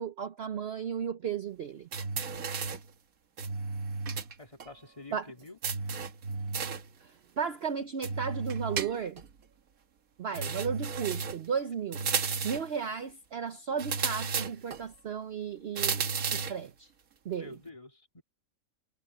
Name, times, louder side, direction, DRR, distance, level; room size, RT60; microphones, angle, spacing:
voice 1, 0.0-1.9 5.1-5.3 7.0-9.2 10.2-12.1 12.4-16.9 17.2-17.5, right 7 dB, 50° right, 1.0 m, -35 dB
sound 1, 1.9-2.9 3.4-4.3 4.6-4.7 5.6-6.9 8.0-9.3 10.3-11.5 11.9-12.7 13.8-14.8 15.8-16.6, right 5 dB, 75° right, 1.8 m, -33 dB
voice 2, 4.4-5.6 10.3-10.7 17.3-18.2, left 3 dB, 25° left, 2.1 m, -49 dB
omnidirectional pair, 1.5 m